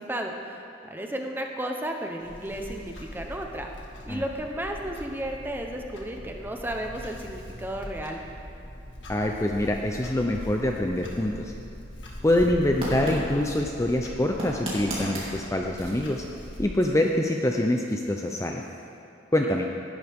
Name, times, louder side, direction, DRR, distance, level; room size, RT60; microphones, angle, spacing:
voice 1, 0.0-3.7 4.1-8.2 19.4-19.6, right 1 dB, 10° right, 2 dB, 0.9 m, -33 dB
Clock, 2.2-16.7, equal, 80° left, 1.9 m, -41 dB
voice 2, 9.1-11.5 12.2-16.2 16.6-18.6 19.3-19.7, left 1 dB, 15° left, 2 dB, 0.6 m, -25 dB
sound 1, 12.7-19.0, right 1 dB, 30° right, 3.4 m, -39 dB
18.5 x 11.5 x 3.6 m, 2.7 s
head